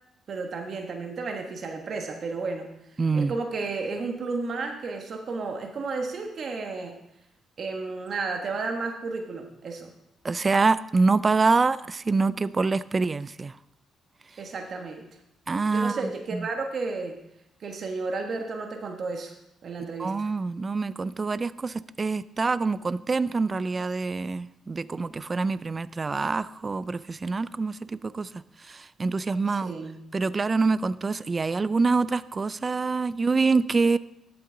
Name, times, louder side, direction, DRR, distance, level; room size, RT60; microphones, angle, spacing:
voice 1, 0.3-2.7 3.1-7.0 7.6-9.9 14.4-15.1 15.7-17.2 17.6-19.3 19.6-20.3 29.5-30.0, right 3 dB, 55° right, 4 dB, 1.3 m, -32 dB
voice 2, 3.0-3.3 10.2-13.5 15.5-16.5 19.8-28.3 28.7-29.7 30.1-34.0, right 4 dB, 30° right, 17 dB, 0.3 m, -26 dB
11.5 x 7.8 x 3.8 m, 0.81 s
cardioid pair, 90°, 0 cm